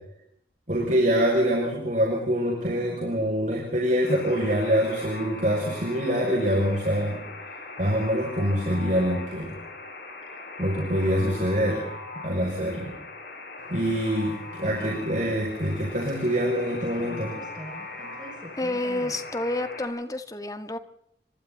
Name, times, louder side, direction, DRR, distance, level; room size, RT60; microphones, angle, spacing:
voice 1, 0.7-7.2 7.8-9.5 10.6-11.8 12.2-12.9 13.7-17.3, equal, 45° right, -3 dB, 6.8 m, -25 dB
Alarm, 4.0-19.9, left 3 dB, 65° left, 7.7 m, -40 dB
sound 1, 13.6-19.7, equal, 25° right, 6.4 m, -46 dB
voice 2, 18.6-20.8, left 2 dB, 20° left, 9 dB, 1.9 m, -29 dB
29.5 x 26.0 x 4.2 m, 0.73 s
head